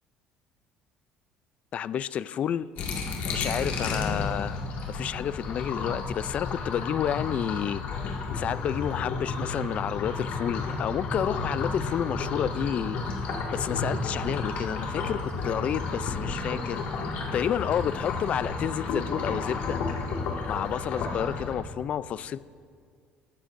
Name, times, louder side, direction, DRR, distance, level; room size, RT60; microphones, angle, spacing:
voice 1, 1.7-2.7 3.3-7.8 8.3-13.0 13.5-16.8 17.3-19.8 20.5-22.4, left 9 dB, 45° left, 16 dB, 0.3 m, -30 dB
sound 1, 2.8-21.5, left 3 dB, 65° left, 1.9 m, -32 dB
23.5 x 12.5 x 2.6 m, 2.1 s
cardioid pair, 120°, 3 cm